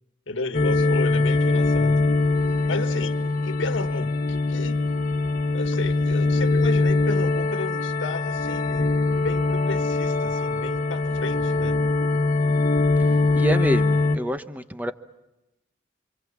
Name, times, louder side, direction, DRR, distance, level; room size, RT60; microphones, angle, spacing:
voice 1, 0.3-2.0 2.7-4.8 5.5-11.8, left 3 dB, 65° left, 1.6 m, -33 dB
sound 1, 0.5-14.2, left 3 dB, 40° left, 1.6 m, -22 dB
voice 2, 13.4-14.9, equal, 10° right, 0.9 m, -27 dB
29.0 x 25.5 x 7.3 m
head